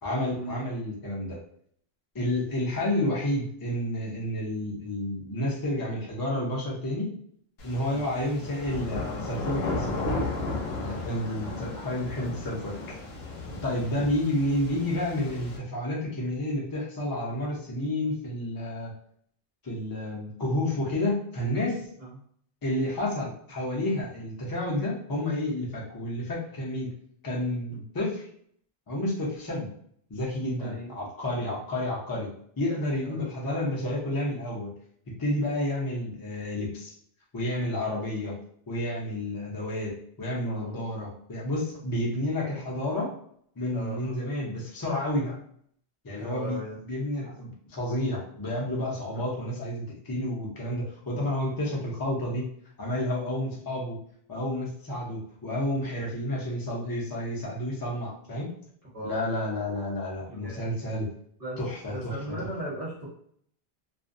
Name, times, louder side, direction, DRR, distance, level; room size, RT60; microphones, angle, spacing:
voice 1, 0.0-1.4 2.1-7.1 7.6-10.0 10.7-12.8 13.6-18.9 19.6-21.9 22.6-26.9 27.2-28.2 28.9-29.7 30.1-32.3 32.6-34.7 35.2-36.9 37.3-38.4 38.7-43.1 43.6-45.4 46.0-46.6 46.8-52.5 52.8-54.0 54.3-58.5 59.0-61.1 61.6-62.5, left 1 dB, 25° left, -3 dB, 0.5 m, -30 dB
sound 1, 7.6-15.6, left 2 dB, 75° left, 0.9 m, -34 dB
voice 2, 10.8-11.2 22.0-22.1 30.6-30.9 33.0-33.3 40.4-40.7 43.7-44.2 46.1-46.8 49.1-49.3 56.2-56.3 58.9-59.2 60.3-60.7 61.4-61.6 61.9-63.1, right 1 dB, 40° right, -7 dB, 1.1 m, -38 dB
2.4 x 2.1 x 2.5 m, 0.64 s
omnidirectional pair, 1.0 m